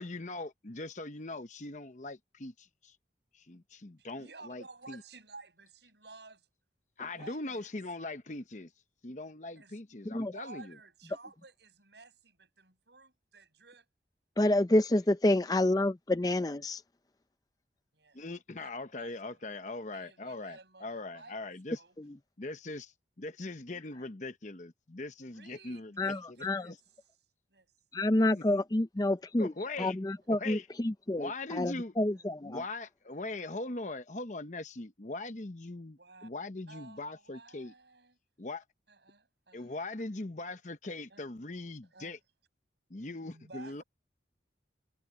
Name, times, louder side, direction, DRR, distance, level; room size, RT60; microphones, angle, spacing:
voice 1, 0.0-3.0 3.3-5.0 7.0-8.7 9.0-10.8 18.2-21.8 22.4-26.1 26.7-26.8 28.3-28.4 29.4-30.0 30.3-30.7 31.1-31.9 32.4-37.7 38.4-38.6 39.5-42.2 42.9-43.8, left 2 dB, 40° left, 0.9 m, -41 dB
voice 2, 4.0-6.5 7.0-7.7 9.6-9.8 10.1-13.9 18.0-18.2 18.6-18.7 19.0-19.4 19.9-22.0 25.3-26.7 27.5-27.7 28.2-28.3 31.5-31.6 32.1-32.3 36.0-36.3 36.7-38.2 38.9-39.7 41.1-41.2 41.8-42.2 43.0-43.8, right 3 dB, 70° right, 6.8 m, -54 dB
voice 3, 14.4-16.8 22.0-22.1 26.0-26.6 27.9-29.5 29.8-32.6, left 1 dB, 20° left, 0.5 m, -28 dB
head